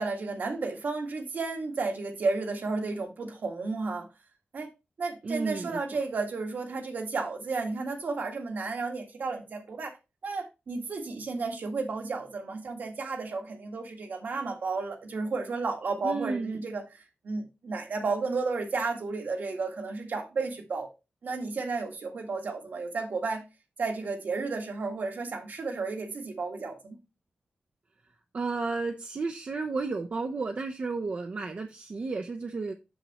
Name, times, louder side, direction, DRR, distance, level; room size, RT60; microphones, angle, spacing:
voice 1, 0.0-4.1 4.5-4.7 5.0-9.9 10.2-20.9 21.2-23.4 23.8-27.0, right 3 dB, 65° right, 1.6 m, -32 dB
voice 2, 5.2-5.8 16.0-16.6 28.3-32.7, right 4 dB, 45° right, 0.6 m, -32 dB
7.1 x 6.8 x 2.9 m
wide cardioid pair, 140°, 3 cm